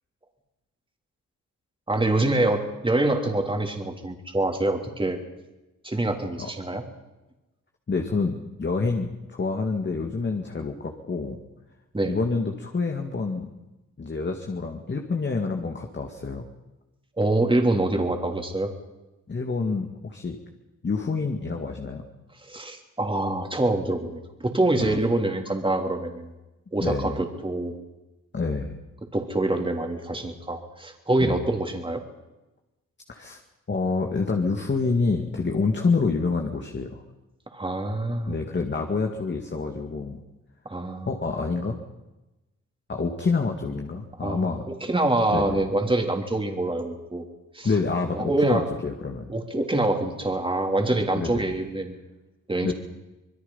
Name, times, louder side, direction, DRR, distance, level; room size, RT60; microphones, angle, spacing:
voice 1, 1.9-5.2 5.8-6.8 11.9-12.2 17.2-18.7 22.5-26.3 26.7-27.7 29.1-32.0 37.5-38.3 40.6-41.1 44.2-47.2 47.5-47.7 48.2-48.6 49.3-52.0 52.5-52.7, right 2 dB, 15° right, 3 dB, 3.4 m, -25 dB
voice 2, 7.9-11.4 12.0-13.5 14.0-16.5 19.3-20.4 20.8-22.0 24.8-25.0 26.8-27.2 28.3-28.8 31.2-31.4 33.1-33.4 33.7-37.0 38.3-40.2 41.0-41.8 42.9-44.6 45.3-45.6 47.6-49.3 50.9-51.6 52.6-52.7, left 4 dB, 35° left, 3 dB, 2.3 m, -27 dB
25.5 x 22.0 x 5.7 m, 1.0 s
cardioid pair, 105°, 32 cm